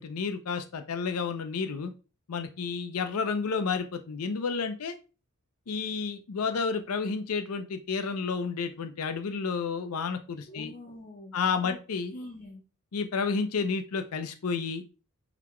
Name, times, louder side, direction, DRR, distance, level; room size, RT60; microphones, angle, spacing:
voice 1, 0.0-1.9 2.3-4.9 5.7-10.7 11.3-12.1 12.9-14.8, left 5 dB, 80° left, 8 dB, 0.5 m, -31 dB
voice 2, 10.5-11.4 11.6-11.8 12.1-12.6, left 1 dB, 35° left, 1 dB, 0.6 m, -44 dB
4.0 x 3.3 x 3.0 m, 0.32 s
head